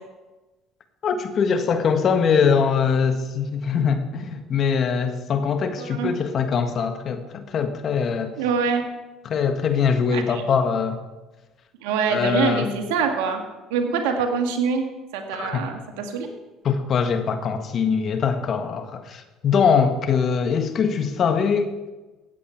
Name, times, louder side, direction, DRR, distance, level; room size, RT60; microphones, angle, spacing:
voice 1, 1.0-8.3 9.2-11.0 12.1-12.7 15.3-15.7 16.6-21.7, left 6 dB, 50° left, 7 dB, 1.5 m, -22 dB
voice 2, 5.8-6.1 8.4-8.8 10.1-10.4 11.8-13.4 13.7-14.8 15.1-16.3, right 5 dB, 85° right, 4 dB, 1.8 m, -24 dB
15.5 x 8.5 x 4.5 m, 1.2 s
supercardioid pair, 75°, 0 cm